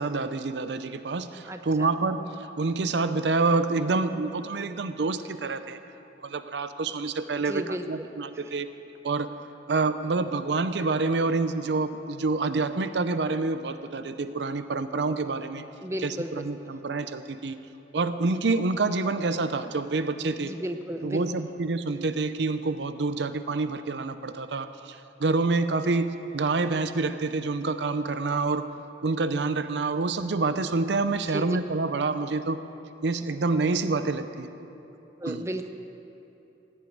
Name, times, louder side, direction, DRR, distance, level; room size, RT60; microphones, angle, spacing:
voice 1, 0.0-5.8 6.2-8.7 9.0-9.3 9.7-15.6 16.0-17.6 17.9-20.5 21.0-28.7 29.0-32.6 33.0-34.5 35.3-35.5, right 3 dB, 65° right, 11 dB, 0.6 m, -27 dB
voice 2, 1.5-1.9 7.5-8.1 8.3-8.5 15.8-16.5 20.4-21.3 31.3-31.6 35.2-35.7, equal, 15° right, 7 dB, 0.7 m, -34 dB
16.0 x 8.1 x 9.2 m, 2.9 s
head